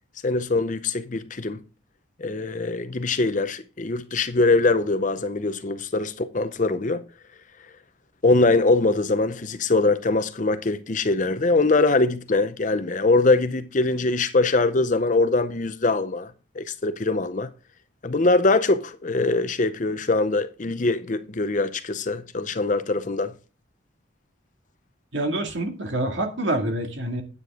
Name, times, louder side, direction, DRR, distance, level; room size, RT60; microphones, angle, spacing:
voice 1, 0.2-1.6 2.2-7.0 8.2-17.5 18.0-23.3, left 3 dB, 40° left, 0.6 m, -22 dB
voice 2, 25.1-27.2, right 1 dB, 65° right, 2.2 m, -26 dB
9.5 x 9.5 x 3.6 m
head